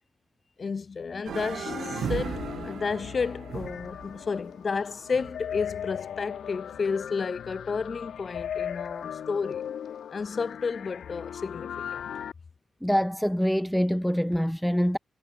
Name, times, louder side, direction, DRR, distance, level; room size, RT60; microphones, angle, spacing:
voice 1, 0.6-9.6 10.1-12.0, left 5 dB, 35° left, 6.0 m, -32 dB
sound 1, 1.3-5.5, right 8 dB, 65° right, 2.3 m, -37 dB
sound 2, 1.7-12.3, left 9 dB, 80° left, 6.3 m, -38 dB
voice 2, 12.8-15.0, equal, ahead, 0.6 m, -25 dB
wide cardioid pair, 170°, 0 cm